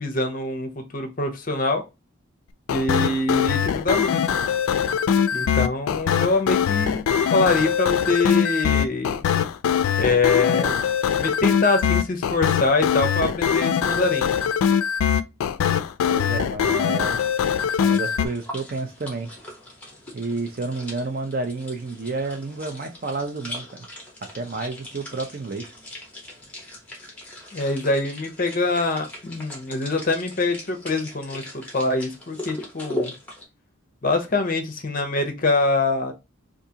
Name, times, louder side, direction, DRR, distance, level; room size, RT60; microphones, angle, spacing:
voice 1, 0.0-1.8 2.7-4.2 5.3-7.0 7.3-9.2 10.0-10.8 11.2-14.3 27.5-33.1 34.0-36.1, left 3 dB, 40° left, 0.6 m, -24 dB
sound 1, 2.7-18.3, left 8 dB, 90° left, 0.3 m, -22 dB
voice 2, 16.0-17.2 17.8-19.3 20.1-23.9 24.3-25.7, right 3 dB, 45° right, 0.5 m, -30 dB
sound 2, 17.7-33.4, left 1 dB, 5° left, 0.9 m, -39 dB
3.6 x 2.5 x 2.8 m
head